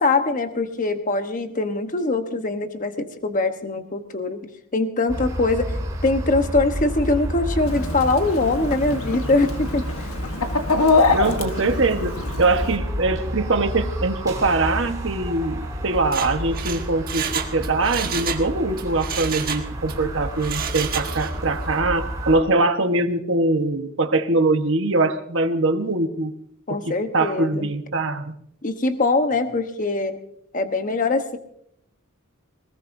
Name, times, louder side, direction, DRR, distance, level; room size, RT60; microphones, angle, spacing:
voice 1, 0.0-5.7 6.0-10.1 26.7-27.7 28.6-30.2 30.5-31.4, left 3 dB, 40° left, 7 dB, 1.1 m, -23 dB
sound 1, 5.1-22.4, equal, 15° right, 3.0 m, -30 dB
Chicken rooster, 7.6-12.8, left 3 dB, 85° left, 1.3 m, -24 dB
voice 2, 11.1-26.3 27.1-28.3, right 2 dB, 60° right, 6 dB, 1.3 m, -22 dB
Mechanisms, 16.0-18.5 18.8-20.0 20.4-21.4 21.7-21.8, right 7 dB, 45° right, 1.4 m, -30 dB
22.0 x 20.0 x 2.7 m, 0.70 s
head